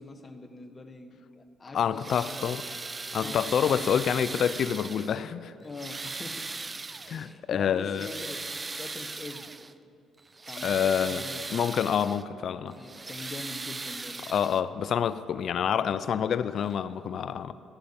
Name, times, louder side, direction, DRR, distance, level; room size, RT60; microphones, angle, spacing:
voice 1, 0.0-2.6 3.2-3.9 5.6-6.5 7.1-9.5 10.4-11.4 12.8-14.3, left 3 dB, 30° left, 8 dB, 1.4 m, -43 dB
voice 2, 1.7-2.6 3.1-5.5 7.1-8.1 10.6-11.2 11.5-12.8 14.3-17.5, left 8 dB, 60° left, 15 dB, 0.4 m, -27 dB
sound 1, 1.8-5.3 5.7-7.3 7.8-9.7 10.2-12.2 12.7-14.8 15.9-16.0 16.6-16.7, right 3 dB, 25° right, 0.5 m, -38 dB
15.5 x 10.0 x 7.1 m, 2.7 s
supercardioid pair, 70°, 0 cm